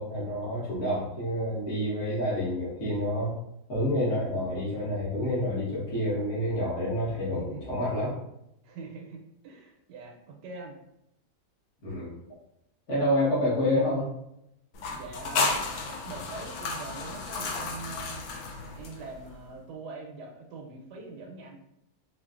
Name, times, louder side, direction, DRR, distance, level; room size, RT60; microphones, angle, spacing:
voice 1, 0.0-3.3 3.7-8.1 11.8-12.1 12.9-14.1, left 1 dB, 45° left, -8 dB, 1.5 m, -28 dB
voice 2, 8.6-10.8 14.9-18.2 18.7-21.6, right 3 dB, 80° right, 1 dB, 1.3 m, -43 dB
sound 1, 14.7-19.3, left 3 dB, 75° left, 1.1 m, -33 dB
4.4 x 2.4 x 2.4 m, 0.80 s
omnidirectional pair, 1.8 m